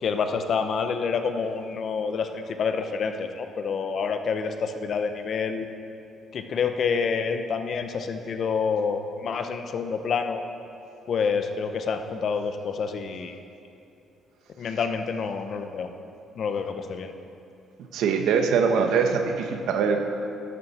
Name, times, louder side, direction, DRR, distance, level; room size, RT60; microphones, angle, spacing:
voice 1, 0.0-5.7 6.3-10.4 11.1-13.4 14.6-15.9 16.4-17.1, left 5 dB, 50° left, 7 dB, 0.8 m, -28 dB
voice 2, 17.9-20.0, right 6 dB, 80° right, 5 dB, 1.2 m, -22 dB
12.5 x 11.5 x 4.3 m, 2.7 s
cardioid pair, 130°, 0 cm